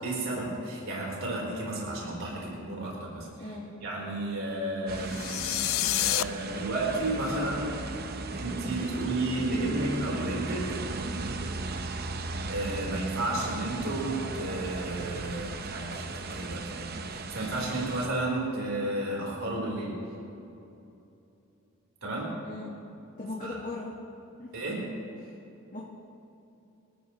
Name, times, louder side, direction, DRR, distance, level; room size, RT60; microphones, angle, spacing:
voice 1, 0.0-3.6 3.8-5.2 6.0-7.9 8.3-10.6 12.5-20.0 22.0-22.3 23.4-23.6 24.5-24.8, right 2 dB, 65° right, -3 dB, 4.1 m, -32 dB
voice 2, 3.4-3.7 22.4-22.7 23.2-23.9 24.4-24.5 25.7-25.8, left 2 dB, 35° left, -4 dB, 1.6 m, -38 dB
sound 1, 4.9-18.1, right 3 dB, 45° right, 0.8 m, -36 dB
sound 2, 5.0-6.2, left 15 dB, 65° left, 0.4 m, -28 dB
26.0 x 13.5 x 3.2 m, 2.8 s
head